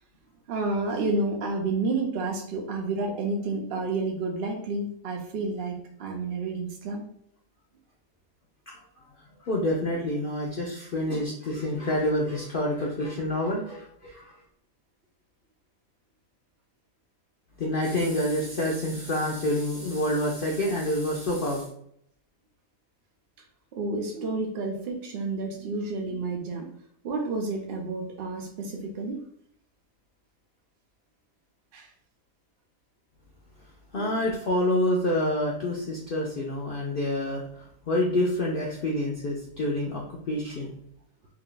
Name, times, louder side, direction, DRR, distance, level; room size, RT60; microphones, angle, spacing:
voice 1, 0.5-7.0 23.7-26.7 27.0-29.2 31.7-31.9 33.9-34.2, right 3 dB, 65° right, 1 dB, 0.6 m, -30 dB
voice 2, 9.5-14.3 17.6-21.6 33.9-37.4 37.9-40.7, left 1 dB, 60° left, -2 dB, 0.6 m, -27 dB
2.7 x 2.3 x 3.8 m, 0.70 s
omnidirectional pair, 1.5 m